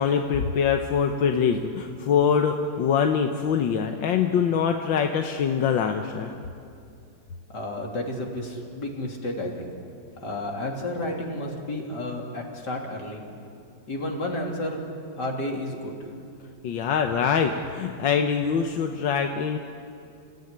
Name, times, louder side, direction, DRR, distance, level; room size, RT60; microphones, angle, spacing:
voice 1, 0.0-6.3 16.6-19.6, left 7 dB, 90° left, 5 dB, 1.7 m, -24 dB
voice 2, 7.5-9.7 10.2-13.2 13.9-14.8 15.2-15.9, left 1 dB, 65° left, 0 dB, 3.8 m, -31 dB
29.0 x 16.0 x 9.8 m, 2.5 s
omnidirectional pair, 2.0 m